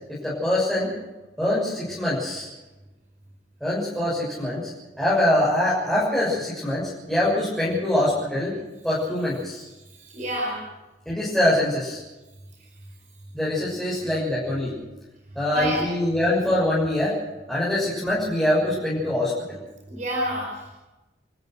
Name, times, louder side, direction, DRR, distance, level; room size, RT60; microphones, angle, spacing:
voice 1, 0.1-0.9 1.4-2.5 3.6-4.7 5.0-8.5 8.8-9.7 11.0-12.0 13.3-14.7 15.3-17.2 17.5-19.6, left 1 dB, ahead, -9 dB, 6.8 m, -24 dB
voice 2, 10.0-10.6 15.5-15.8 19.9-20.7, equal, 45° right, 0 dB, 5.1 m, -28 dB
29.0 x 14.5 x 6.2 m, 1.1 s
head